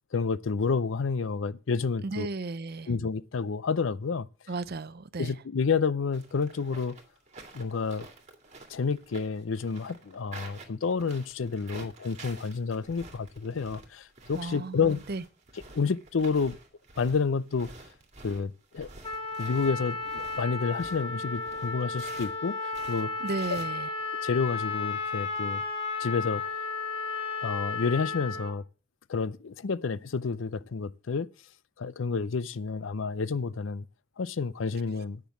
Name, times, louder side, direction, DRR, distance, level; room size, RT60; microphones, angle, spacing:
voice 1, 0.1-2.3 2.9-4.3 5.2-7.0 7.5-8.1 8.7-15.0 15.7-16.6 17.0-17.7 18.2-18.9 19.4-23.1 24.2-25.6 26.0-26.4 27.4-28.6 29.1-31.3 31.8-33.9 34.2-35.2, left 5 dB, 70° left, 0.5 m, -29 dB
voice 2, 2.0-2.9 4.5-5.3 14.3-15.2 23.2-23.9, right 3 dB, 50° right, 0.6 m, -34 dB
sound 1, 6.1-22.4 22.7-23.7, right 3 dB, 35° right, 2.3 m, -49 dB
Trumpet, 19.0-28.5, left 4 dB, 30° left, 1.7 m, -33 dB
10.0 x 6.1 x 7.2 m
head